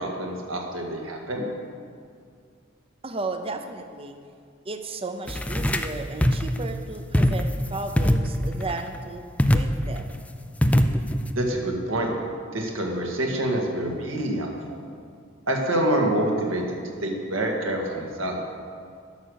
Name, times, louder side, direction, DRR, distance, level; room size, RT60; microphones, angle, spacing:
voice 1, 0.0-1.5 11.4-12.1 12.5-14.8 15.5-18.4, right 1 dB, 75° right, 0 dB, 1.8 m, -27 dB
voice 2, 3.0-4.2 4.6-9.3 9.5-10.1, right 3 dB, 30° right, 7 dB, 0.6 m, -34 dB
sound 1, 5.3-5.9 6.2-6.6 7.1-7.7 8.0-8.8 9.4-10.0 10.6-11.3, equal, 5° left, 0.4 m, -22 dB
11.5 x 6.4 x 6.5 m, 2.2 s
head